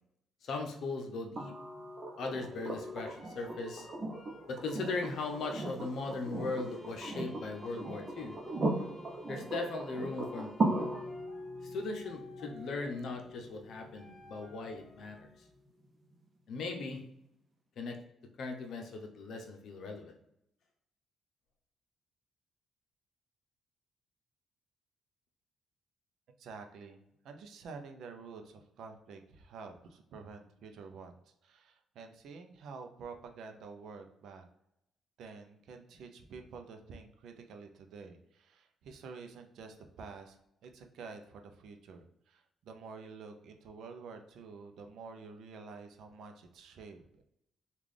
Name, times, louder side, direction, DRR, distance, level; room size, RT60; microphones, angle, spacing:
voice 1, 0.4-1.5 2.2-3.9 4.5-8.3 9.3-10.8 11.6-15.3 16.5-17.0 17.8-17.9 18.4-20.1, left 3 dB, 70° left, 3 dB, 0.6 m, -38 dB
sound 1, 1.4-15.3 17.0-17.1, right 2 dB, 40° right, 0.7 m, -39 dB
sound 2, 2.3-15.5, left 2 dB, 20° left, 1.0 m, -56 dB
sound 3, 6.3-11.3, left 3 dB, 5° left, 0.6 m, -57 dB
voice 2, 26.4-34.4 35.2-40.4 40.6-47.2, right 4 dB, 75° right, 5 dB, 0.5 m, -49 dB
3.7 x 2.4 x 3.2 m, 0.80 s
cardioid pair, 90°, 0 cm